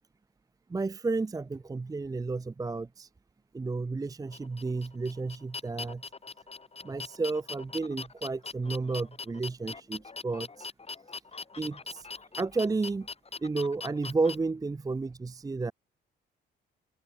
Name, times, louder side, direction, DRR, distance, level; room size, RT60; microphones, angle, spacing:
voice 1, 0.7-3.1 3.5-6.0 6.8-10.7 11.6-12.1 12.4-13.1 13.4-15.7, right 3 dB, 20° right, 0.6 m, -32 dB
sound 1, 4.3-14.4, left 4 dB, 30° left, 5.5 m, -41 dB
open air
cardioid pair, 90°, 20 cm